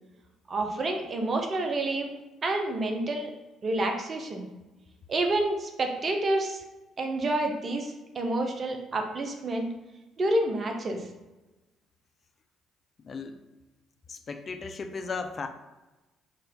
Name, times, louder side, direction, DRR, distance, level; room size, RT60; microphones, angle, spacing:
voice 1, 0.5-2.1 2.4-3.3 3.6-4.5 5.1-6.6 7.0-9.7 10.2-11.0, right 2 dB, 40° right, 3 dB, 0.7 m, -28 dB
voice 2, 13.0-13.4 14.1-15.5, left 4 dB, 40° left, 7 dB, 0.4 m, -36 dB
4.3 x 2.6 x 3.6 m, 1.1 s
figure-of-eight pair, 50°, 0 cm